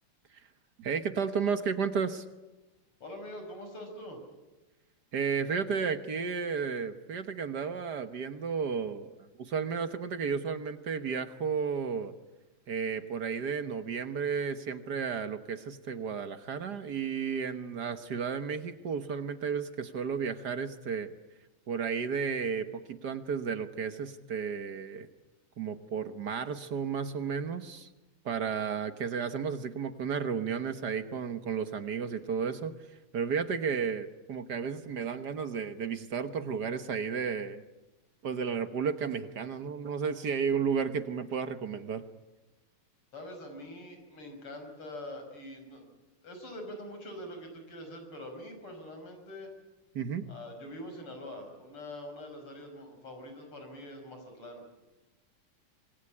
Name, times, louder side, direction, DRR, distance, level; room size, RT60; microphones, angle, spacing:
voice 1, 0.8-2.2 5.1-12.1 12.7-21.1 21.7-25.1 25.6-27.9 28.2-32.8 33.1-37.6 38.2-42.0 49.9-50.2, right 6 dB, 55° right, 10 dB, 1.6 m, -33 dB
voice 2, 3.0-4.2 43.1-45.9 46.2-49.5 50.3-54.6, left 1 dB, 85° left, 5 dB, 6.3 m, -44 dB
26.0 x 21.0 x 9.9 m, 1.1 s
omnidirectional pair, 2.4 m